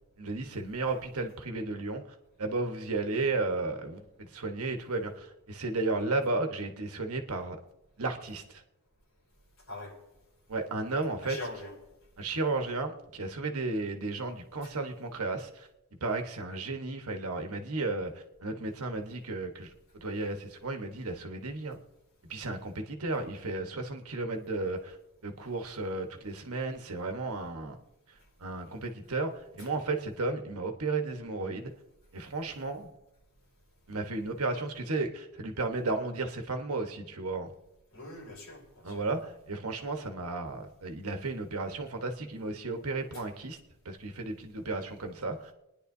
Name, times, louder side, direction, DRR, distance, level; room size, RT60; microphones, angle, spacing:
voice 1, 0.2-2.0 2.4-7.6 8.0-8.6 10.5-11.4 12.2-15.7 16.0-19.7 20.0-21.8 22.3-24.9 25.2-27.8 28.4-31.7 32.1-32.9 33.9-37.5 38.8-43.6 43.8-45.5, right 3 dB, 85° right, 5 dB, 1.3 m, -34 dB
voice 2, 11.2-11.7 14.6-14.7 29.6-29.7 37.9-39.1 43.1-43.2, left 2 dB, 70° left, -3 dB, 4.9 m, -43 dB
27.5 x 10.0 x 2.7 m, 0.93 s
head